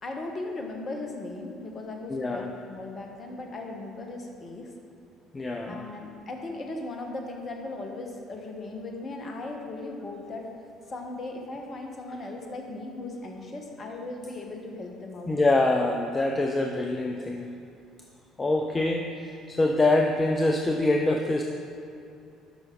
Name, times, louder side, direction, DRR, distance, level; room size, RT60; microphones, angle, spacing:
voice 1, 0.0-4.7 5.7-10.5 10.9-15.4, left 2 dB, 40° left, 2 dB, 1.3 m, -37 dB
voice 2, 2.1-2.5 5.3-5.9 15.3-17.5 18.4-21.4, left 2 dB, 25° left, 2 dB, 0.6 m, -25 dB
12.0 x 5.7 x 3.9 m, 2.6 s
figure-of-eight pair, 55°, 0 cm